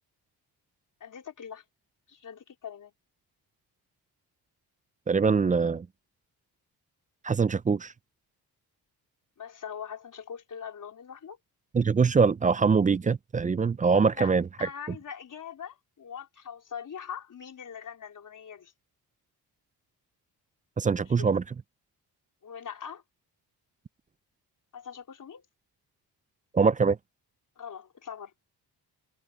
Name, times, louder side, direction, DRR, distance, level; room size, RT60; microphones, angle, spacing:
voice 1, 1.0-1.6 2.1-2.9 9.4-11.4 14.1-18.7 21.0-21.3 22.4-23.0 24.7-25.4 27.6-28.3, left 7 dB, 50° left, 4.3 m, -42 dB
voice 2, 5.1-5.9 7.2-7.9 11.7-14.4 20.8-21.4 26.5-27.0, right 5 dB, 20° right, 0.4 m, -23 dB
cardioid pair, 115°, 40 cm